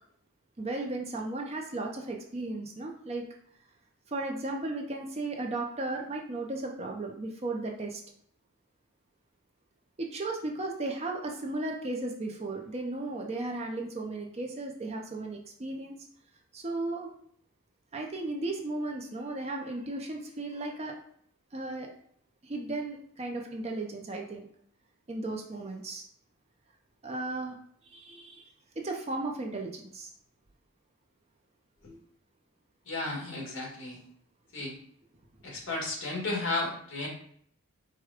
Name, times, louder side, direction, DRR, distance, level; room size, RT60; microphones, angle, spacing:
voice 1, 0.6-3.2 4.1-8.0 10.0-15.9 16.5-17.1 17.9-20.9 21.5-21.9 22.4-24.5 25.1-26.0 27.0-27.6 27.9-28.4 28.8-30.1, right 2 dB, 30° right, 1 dB, 0.5 m, -35 dB
voice 2, 32.9-34.0 34.5-34.7 35.4-37.1, left 2 dB, 60° left, -2 dB, 1.6 m, -33 dB
4.8 x 2.2 x 4.8 m, 0.63 s
head